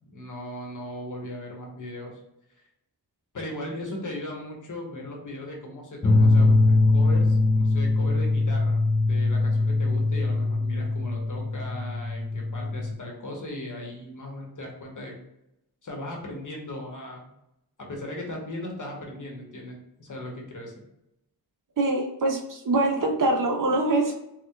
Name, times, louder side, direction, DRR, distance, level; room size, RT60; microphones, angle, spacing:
voice 1, 0.0-2.2 3.3-15.1 15.8-17.3 17.9-20.7, left 1 dB, 55° left, 0 dB, 1.0 m, -37 dB
sound 1, 6.0-12.9, left 2 dB, 15° left, 0.3 m, -22 dB
voice 2, 21.8-24.1, right 2 dB, 55° right, 1 dB, 0.7 m, -24 dB
4.4 x 2.2 x 2.3 m, 0.84 s
wide cardioid pair, 90°, 38 cm